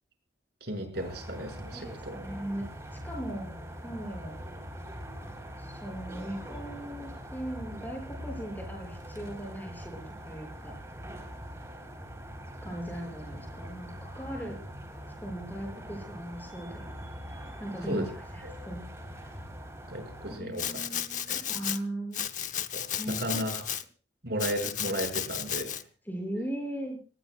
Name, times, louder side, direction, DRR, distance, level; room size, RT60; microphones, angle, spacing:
voice 1, 0.6-2.2 17.9-18.1 19.9-20.8 21.3-21.4 22.7-22.8 23.2-23.6 24.2-25.8, equal, 60° right, 4 dB, 6.4 m, -34 dB
sound 1, 0.9-20.4, equal, 15° right, 4.0 m, -43 dB
voice 2, 1.7-2.7 2.9-3.5 3.8-4.4 5.6-10.8 12.6-14.6 15.2-16.9 17.6-18.0 18.3-18.8 19.1-19.3 20.4-22.6 23.0-23.4 26.1-27.0, right 1 dB, 10° left, 1 dB, 6.9 m, -38 dB
Domestic sounds home sounds, 20.6-21.8 22.1-23.8 24.4-25.8, left 10 dB, 45° left, 0.9 m, -34 dB
26.5 x 19.0 x 2.4 m, 0.37 s
head